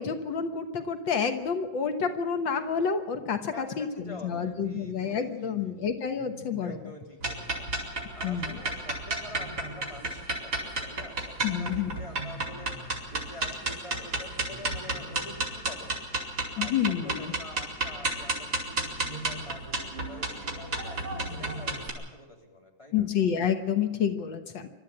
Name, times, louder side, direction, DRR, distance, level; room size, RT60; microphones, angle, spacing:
voice 1, 0.0-6.8 8.2-8.6 11.4-11.9 16.6-17.3 22.9-24.7, left 7 dB, 85° left, 7 dB, 2.1 m, -29 dB
voice 2, 3.5-5.8 6.6-7.7 8.1-12.7 13.1-16.0 16.6-21.0 21.3-23.1, left 1 dB, 15° left, 0 dB, 3.7 m, -46 dB
Wild animals, 4.6-5.0 6.2-6.9 9.2-10.1 11.9-13.0 14.5-15.4 17.0-18.1 18.8-19.7 21.0-22.0, right 1 dB, 65° left, 5.4 m, -46 dB
sound 1, 7.2-21.9, right 2 dB, 55° right, 5.1 m, -32 dB
25.5 x 13.0 x 8.7 m, 1.1 s
omnidirectional pair, 2.0 m